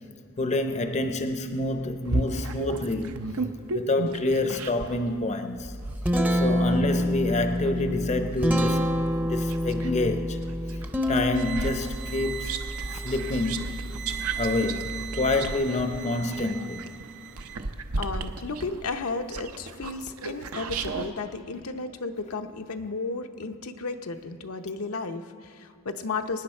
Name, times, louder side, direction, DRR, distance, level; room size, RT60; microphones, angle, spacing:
voice 1, 0.4-3.2 3.7-5.8 6.3-10.4 11.1-12.5 12.9-13.8 14.2-17.0, left 2 dB, 30° left, 0.6 m, -28 dB
sound 1, 2.0-5.0 5.6-9.9 10.4-21.1, right 3 dB, 80° right, 0.8 m, -34 dB
Guitar, 5.6-15.4, equal, 10° right, 0.6 m, -28 dB
sound 2, 11.3-17.6, right 12 dB, 55° right, 0.4 m, -39 dB
voice 2, 18.0-26.4, left 3 dB, 80° left, 0.7 m, -33 dB
24.0 x 9.7 x 4.4 m
head